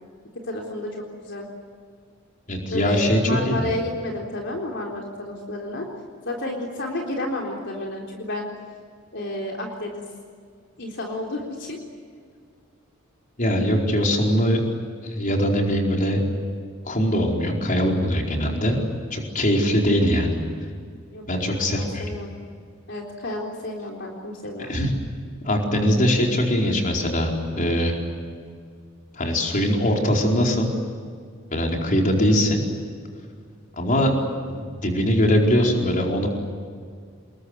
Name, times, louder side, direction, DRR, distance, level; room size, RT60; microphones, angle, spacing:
voice 1, 0.4-1.5 2.7-5.9 6.2-8.5 9.1-10.1 10.8-11.8 21.1-22.3 22.9-24.7 34.0-34.3, left 1 dB, 60° left, 0 dB, 3.8 m, -31 dB
voice 2, 2.5-3.2 3.5-3.7 13.4-14.6 15.0-16.2 16.8-18.8 19.1-20.4 21.3-22.0 24.6-24.9 25.4-28.0 29.2-30.7 31.5-32.6 33.8-34.2 34.4-36.3, equal, 40° left, 0 dB, 4.6 m, -21 dB
27.5 x 21.5 x 9.7 m, 2.1 s
head